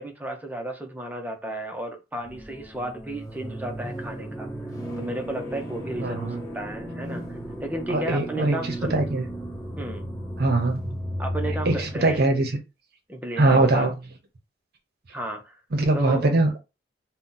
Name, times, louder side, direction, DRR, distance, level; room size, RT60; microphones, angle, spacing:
voice 1, 0.0-4.5 5.0-7.2 7.6-9.0 9.8-10.1 11.2-12.3 13.1-13.9 15.1-15.6 15.9-16.3, right 1 dB, 10° right, 0.6 m, -33 dB
sound 1, 2.2-12.2, equal, 20° left, 1.2 m, -34 dB
voice 2, 6.0-6.4 7.9-9.3 10.4-10.8 11.7-12.6 13.4-14.0 15.7-16.6, right 2 dB, 60° right, 0.7 m, -22 dB
2.7 x 2.1 x 3.7 m
head